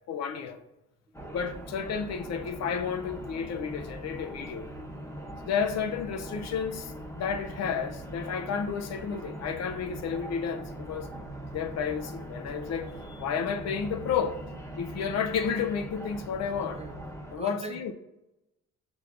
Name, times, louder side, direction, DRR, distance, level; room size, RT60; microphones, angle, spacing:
voice 1, 0.1-0.6 1.3-4.7 5.4-11.1 11.5-14.4 14.8-16.8 17.3-17.9, left 7 dB, 60° left, 0.5 m, -31 dB
sound 1, 1.1-17.4, right 1 dB, 10° left, 0.9 m, -41 dB
voice 2, 16.6-17.9, right 4 dB, 20° right, 0.4 m, -43 dB
6.2 x 3.2 x 2.4 m
cardioid pair, 90°, 30 cm